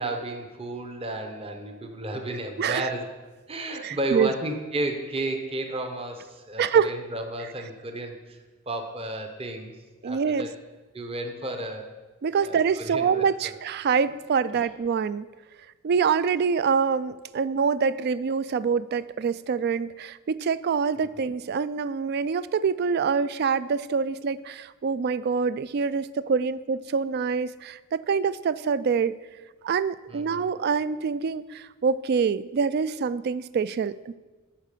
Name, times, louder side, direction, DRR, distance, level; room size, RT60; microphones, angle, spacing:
voice 1, 0.0-3.1 3.5-8.4 8.7-9.7 10.0-10.5 10.9-11.9 12.4-13.2 14.1-14.2 14.5-14.6 30.1-30.5, right 1 dB, 30° right, 5 dB, 0.9 m, -32 dB
voice 2, 3.8-4.3 6.6-6.9 10.0-10.5 12.2-15.3 15.8-29.1 29.6-34.1, right 6 dB, 50° right, 16 dB, 0.3 m, -25 dB
8.7 x 5.5 x 6.6 m, 1.3 s
head